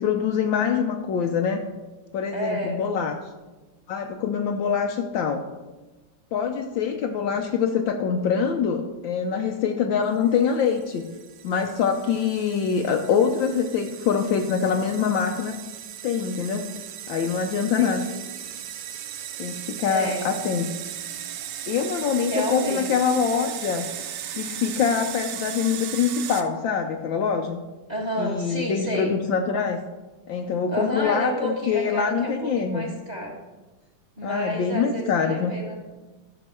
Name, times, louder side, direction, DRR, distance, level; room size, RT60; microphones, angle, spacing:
voice 1, 0.0-1.6 2.1-3.2 3.9-5.4 6.3-11.0 11.4-15.6 16.0-16.7 17.1-18.1 19.4-20.7 21.7-23.9 24.4-27.6 28.2-29.8 30.3-32.8 34.2-35.5, left 6 dB, 70° left, 4 dB, 1.3 m, -24 dB
voice 2, 2.3-2.8 17.5-18.1 19.9-20.3 22.3-22.8 27.9-29.1 30.7-33.4 34.2-35.8, equal, 20° right, -1 dB, 1.7 m, -30 dB
sound 1, 10.4-26.4, right 10 dB, 70° right, 1.1 m, -37 dB
13.0 x 6.1 x 4.7 m, 1.2 s
omnidirectional pair, 2.4 m